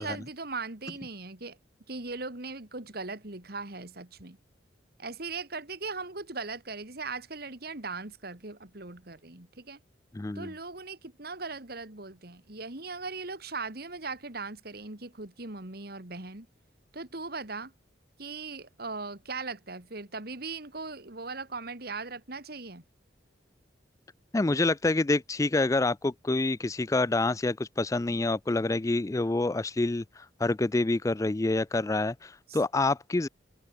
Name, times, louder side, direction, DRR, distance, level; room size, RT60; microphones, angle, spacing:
voice 1, 0.0-1.6 1.9-4.4 5.0-9.8 10.3-16.5 16.9-17.7 18.2-22.8 32.5-32.6, right 3 dB, 55° right, 2.6 m, -39 dB
voice 2, 10.1-10.5 24.3-33.3, left 2 dB, 20° left, 0.4 m, -27 dB
head